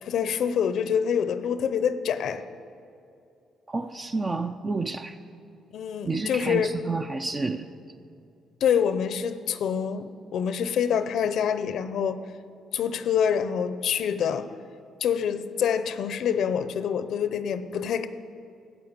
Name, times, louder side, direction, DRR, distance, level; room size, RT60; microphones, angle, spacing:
voice 1, 0.0-2.4 5.7-6.7 8.6-12.2 12.7-14.5 15.0-18.1, left 8 dB, 65° left, 13 dB, 0.7 m, -26 dB
voice 2, 3.7-5.2 6.1-7.7, right 3 dB, 25° right, 8 dB, 0.5 m, -30 dB
14.0 x 8.3 x 8.9 m, 2.5 s
cardioid pair, 130°, 0 cm